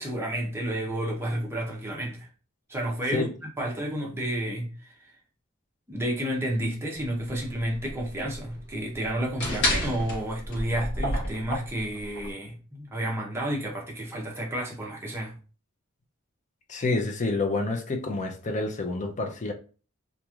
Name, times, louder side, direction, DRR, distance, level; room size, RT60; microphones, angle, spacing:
voice 1, 0.0-2.3 2.7-3.3 3.6-5.1 5.9-15.3, right 1 dB, 10° right, 0.7 m, -31 dB
sound 1, 7.0-12.3, left 1 dB, 60° left, 1.1 m, -31 dB
voice 2, 16.7-19.5, left 3 dB, 35° left, 0.5 m, -28 dB
3.0 x 2.5 x 2.4 m
head